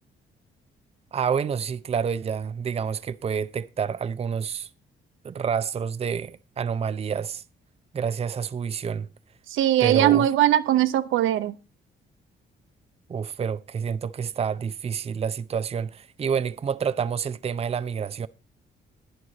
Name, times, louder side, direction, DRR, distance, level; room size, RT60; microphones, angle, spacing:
voice 1, 1.1-4.7 5.2-7.4 7.9-9.1 9.8-10.3 13.1-18.3, right 7 dB, 30° right, 0.5 m, -28 dB
voice 2, 9.5-11.5, right 13 dB, 85° right, 0.8 m, -20 dB
11.0 x 9.4 x 4.0 m
cardioid pair, 90°, 20 cm